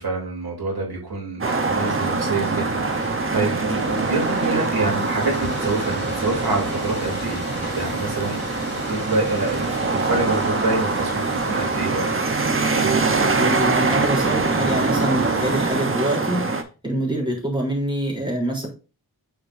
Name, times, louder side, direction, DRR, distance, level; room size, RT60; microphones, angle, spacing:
voice 1, 0.0-12.1, right 3 dB, 85° right, -1 dB, 3.1 m, -27 dB
sound 1, 1.4-15.7, left 2 dB, 30° left, 2.9 m, -35 dB
sound 2, 1.4-16.6, right 3 dB, 35° right, 0.9 m, -23 dB
voice 2, 13.3-18.7, right 1 dB, 15° right, -3 dB, 3.3 m, -25 dB
8.8 x 5.1 x 2.6 m, 0.33 s
wide cardioid pair, 90°, 37 cm